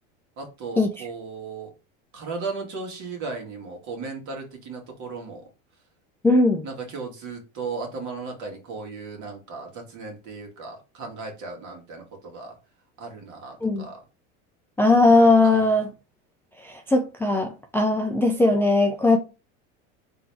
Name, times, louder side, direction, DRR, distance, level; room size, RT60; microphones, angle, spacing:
voice 1, 0.4-1.7 2.1-5.4 6.6-12.6 13.0-14.0 15.4-15.7, right 4 dB, 50° right, 1.8 m, -36 dB
voice 2, 6.2-6.7 13.6-13.9 14.8-15.9 16.6-19.2, left 2 dB, 5° left, 0.4 m, -19 dB
3.9 x 2.9 x 3.4 m
supercardioid pair, 105°, 38 cm